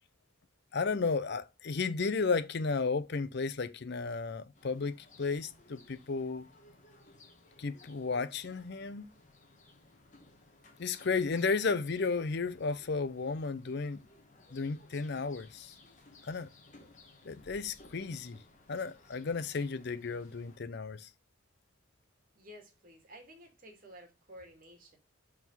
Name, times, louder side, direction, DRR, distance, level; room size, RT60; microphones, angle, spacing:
voice 1, 0.7-6.5 7.6-9.1 10.8-14.1 14.5-15.7 16.2-16.5 17.2-18.4 18.7-21.1, left 4 dB, 55° left, 0.6 m, -33 dB
sound 1, 4.5-20.6, left 2 dB, 35° left, 1.5 m, -59 dB
voice 2, 22.3-25.0, equal, 45° right, 2.5 m, -53 dB
5.8 x 4.6 x 5.5 m
head